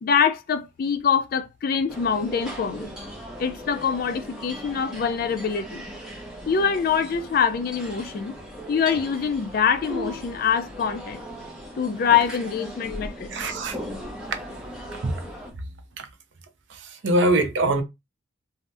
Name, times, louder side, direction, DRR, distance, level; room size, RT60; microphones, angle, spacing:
voice 1, 0.0-3.0 3.4-5.8 6.5-8.3 8.7-11.2 11.8-13.3, left 7 dB, 45° left, 0.3 m, -24 dB
sound 1, 1.9-15.5, equal, 5° right, 0.7 m, -38 dB
voice 2, 13.3-13.8 15.0-15.2 16.0-16.1 16.7-17.8, right 1 dB, 60° right, 0.5 m, -23 dB
2.7 x 2.0 x 3.3 m
head